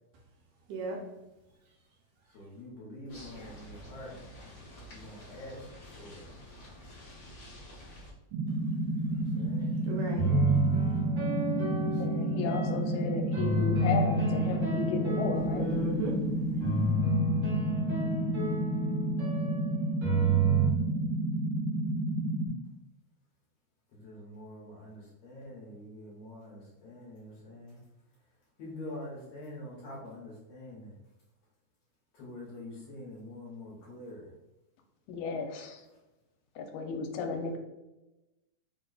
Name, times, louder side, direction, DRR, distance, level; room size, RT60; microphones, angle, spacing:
voice 1, 2.3-4.2 4.9-6.3 9.1-9.8 11.6-12.5 23.9-27.8 28.6-31.0 32.1-34.3, left 1 dB, 65° left, -5 dB, 1.8 m, -46 dB
sound 1, 3.1-8.1, left 1 dB, 45° left, 1.2 m, -49 dB
sound 2, 8.3-22.5, right 1 dB, 90° right, 2.2 m, -31 dB
voice 2, 9.8-10.3 15.4-17.0, right 1 dB, 75° right, -2 dB, 1.9 m, -36 dB
sound 3, 10.2-12.8 13.3-16.0 16.6-20.7, right 2 dB, 55° right, 0.8 m, -30 dB
voice 3, 12.0-15.7 35.1-35.8 36.6-37.6, left 4 dB, 80° left, 4 dB, 2.2 m, -34 dB
5.1 x 2.2 x 3.8 m, 0.99 s
omnidirectional pair, 3.8 m